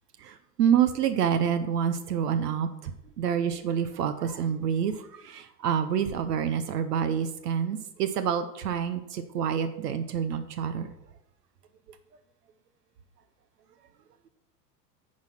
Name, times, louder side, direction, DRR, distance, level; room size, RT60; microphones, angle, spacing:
voice 1, 0.2-2.7 3.2-4.9 5.2-10.9, right 8 dB, 85° right, 10 dB, 0.8 m, -27 dB
9.4 x 4.2 x 5.7 m, 0.84 s
hypercardioid pair, 95°, 47 cm